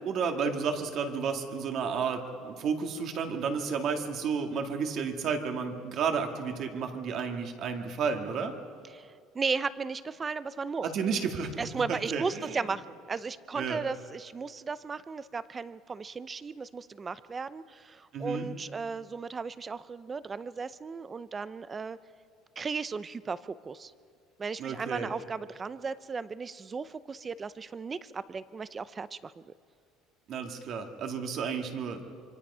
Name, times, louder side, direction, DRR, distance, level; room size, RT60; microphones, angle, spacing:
voice 1, 0.0-8.5 10.8-12.6 13.6-13.8 18.1-18.5 24.6-25.1 30.3-32.0, right 5 dB, 45° right, 4 dB, 2.1 m, -32 dB
voice 2, 8.9-10.9 11.6-22.0 22.6-23.9 24.4-29.5, right 5 dB, 20° right, 16 dB, 0.6 m, -35 dB
25.0 x 25.0 x 5.6 m, 2.2 s
cardioid pair, 155°, 0 cm